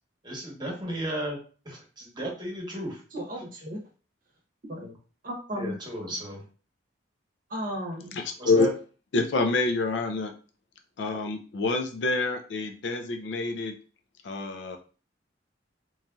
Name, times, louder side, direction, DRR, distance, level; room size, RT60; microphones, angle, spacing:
voice 1, 0.2-1.4 1.6-3.0 4.7-4.9 5.5-6.4 8.4-8.7, right 1 dB, 25° right, -2 dB, 1.0 m, -34 dB
voice 2, 3.1-3.8 4.7-4.8 5.2-5.8 7.5-8.2, equal, 50° right, 0 dB, 0.8 m, -34 dB
voice 3, 8.1-8.7 9.1-10.3 11.0-13.8 14.2-14.8, left 3 dB, 70° left, 4 dB, 0.5 m, -27 dB
3.1 x 2.6 x 2.3 m, 0.38 s
head